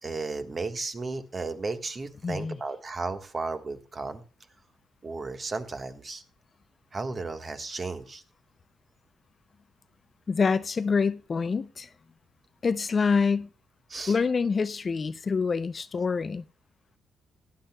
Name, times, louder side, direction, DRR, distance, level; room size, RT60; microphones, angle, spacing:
voice 1, 0.0-4.2 5.0-6.2 6.9-8.2 13.9-14.2, right 3 dB, 35° right, 1.4 m, -34 dB
voice 2, 2.2-2.6 10.3-11.9 12.6-13.5 14.1-16.4, left 5 dB, 35° left, 0.4 m, -26 dB
17.0 x 10.5 x 2.2 m
cardioid pair, 90°, 0 cm